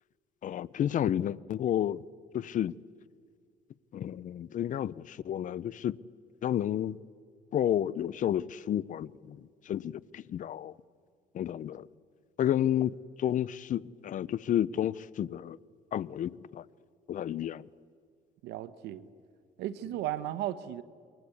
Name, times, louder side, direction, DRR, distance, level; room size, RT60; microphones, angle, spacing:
voice 1, 0.4-2.0 2.3-2.8 3.9-5.9 6.4-7.0 7.5-9.4 9.7-10.7 11.3-11.9 12.4-12.9 13.2-15.6 15.9-16.6 17.1-17.6, left 10 dB, 50° left, 0.7 m, -31 dB
voice 2, 18.4-19.1 19.6-20.8, right 13 dB, 85° right, 1.2 m, -35 dB
28.5 x 23.5 x 8.5 m
cardioid pair, 110°, 17 cm